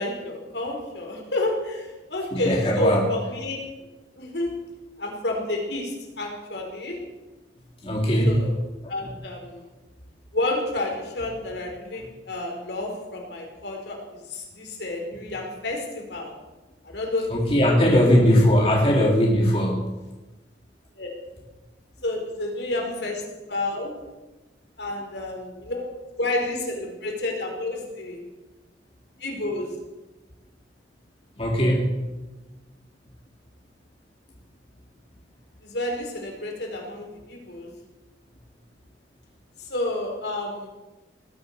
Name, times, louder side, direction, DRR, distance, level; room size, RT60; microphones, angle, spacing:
voice 1, 0.0-3.6 4.2-4.5 5.0-7.0 8.2-8.5 8.9-9.7 10.3-16.3 16.8-17.4 17.8-18.4 21.0-21.1 22.0-23.2 23.5-23.9 24.8-25.9 26.2-28.2 29.2-29.7 35.6-37.7 39.6-40.7, left 2 dB, 70° left, 0 dB, 4.5 m, -30 dB
voice 2, 2.3-3.0 7.8-8.4 17.3-19.8 31.4-31.9, equal, 30° left, -1 dB, 2.4 m, -19 dB
19.0 x 11.0 x 6.6 m, 1.1 s
head